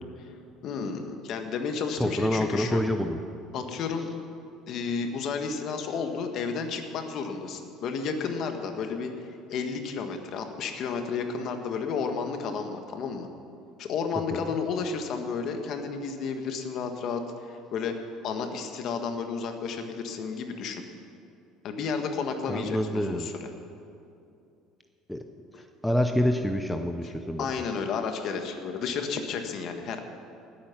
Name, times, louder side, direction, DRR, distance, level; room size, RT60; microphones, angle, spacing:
voice 1, 0.6-2.8 3.5-4.1 4.7-13.3 13.8-20.8 21.6-23.3 27.4-30.0, left 5 dB, 50° left, 6 dB, 1.4 m, -32 dB
voice 2, 2.0-3.2 14.3-14.5 22.5-23.3 25.1-25.2 25.8-27.5, equal, ahead, 5 dB, 0.6 m, -27 dB
19.0 x 8.7 x 5.9 m, 2.6 s
cardioid pair, 150°, 0 cm